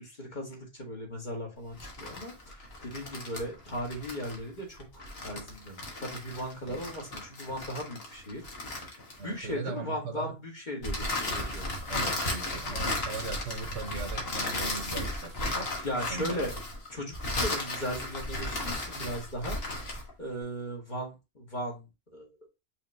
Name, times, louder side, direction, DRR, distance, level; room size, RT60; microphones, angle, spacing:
voice 1, 0.0-8.5 9.2-11.7 15.8-16.5 16.9-19.6 20.2-22.5, equal, 40° left, 2.0 m, -37 dB
sound 1, 1.7-9.5 10.8-20.1, left 1 dB, 65° left, 1.5 m, -35 dB
voice 2, 9.2-10.3 11.9-15.8 16.1-16.5 19.0-19.1, right 3 dB, 85° right, 1.2 m, -39 dB
5.5 x 3.3 x 2.6 m
omnidirectional pair, 1.1 m